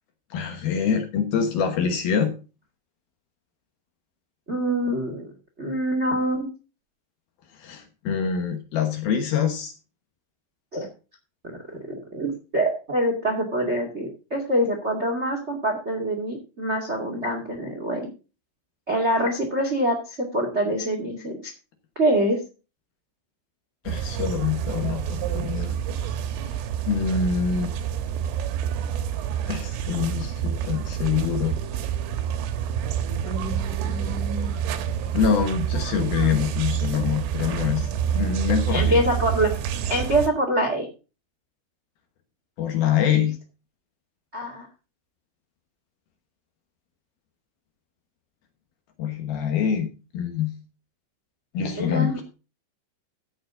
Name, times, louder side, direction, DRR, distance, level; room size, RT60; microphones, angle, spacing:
voice 1, 0.3-2.3 7.6-9.7 23.8-25.8 26.5-26.6 26.9-27.7 29.5-31.5 35.1-39.0 42.6-43.4 49.0-49.9 50.1-50.6 51.5-52.2, left 7 dB, 65° left, 6 dB, 2.6 m, -25 dB
voice 2, 4.5-5.3 5.6-6.5 10.7-10.9 11.4-11.6 11.9-18.1 18.9-21.5 21.9-22.4 33.2-34.5 38.7-39.5 39.9-40.8 44.3-44.7 51.8-52.2, right 1 dB, 40° right, 4 dB, 0.9 m, -25 dB
sound 1, 23.9-40.3, right 9 dB, 85° right, 3.7 m, -28 dB
15.5 x 7.0 x 3.8 m, 0.32 s
omnidirectional pair, 5.5 m